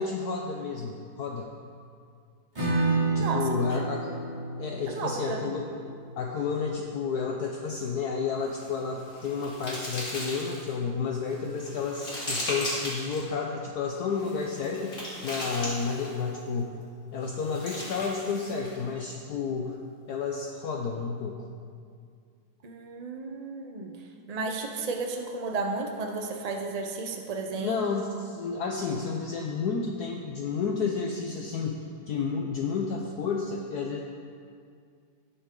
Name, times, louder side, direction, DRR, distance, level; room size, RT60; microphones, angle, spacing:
voice 1, 0.0-1.5 3.1-4.1 4.6-5.7 6.2-16.8 17.1-19.8 20.1-21.4 27.6-34.0, left 5 dB, 65° left, 1 dB, 1.1 m, -31 dB
Acoustic guitar / Strum, 2.5-8.0, right 3 dB, 20° right, 3.1 m, -31 dB
voice 2, 4.9-5.4 22.6-24.0 24.3-27.8, right 3 dB, 50° right, 3 dB, 0.4 m, -33 dB
sound 1, 8.4-10.7 11.3-13.2 14.1-16.3 17.2-18.8, left 1 dB, 40° left, 3.0 m, -37 dB
17.0 x 7.1 x 3.8 m, 2.2 s
omnidirectional pair, 2.1 m